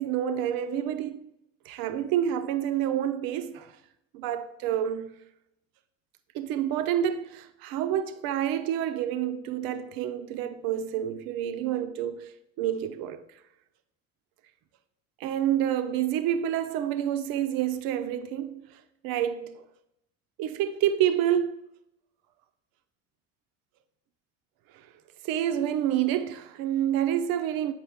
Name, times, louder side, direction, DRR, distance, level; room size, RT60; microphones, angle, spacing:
voice 1, 0.0-1.3 1.6-3.7 4.1-5.1 6.3-13.2 15.2-19.6 20.4-21.6 24.7-24.9 25.2-27.7, right 10 dB, 60° right, 0.8 m, -28 dB
8.8 x 5.3 x 3.6 m
hypercardioid pair, 55°, 38 cm